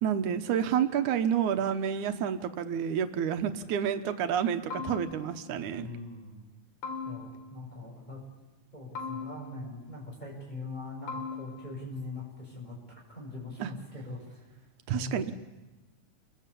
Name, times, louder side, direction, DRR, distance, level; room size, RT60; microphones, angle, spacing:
voice 1, 0.0-5.9 13.6-13.7 14.9-15.3, right 8 dB, 90° right, 8 dB, 2.6 m, -29 dB
sound 1, 4.7-5.5 6.8-7.6 8.9-9.8 11.1-11.9, left 4 dB, 70° left, 4.5 m, -39 dB
voice 2, 5.6-6.3 7.0-8.2 8.7-14.6 14.9-15.2, left 2 dB, 15° left, -1 dB, 7.7 m, -42 dB
29.5 x 22.5 x 8.6 m, 1.1 s
omnidirectional pair, 3.3 m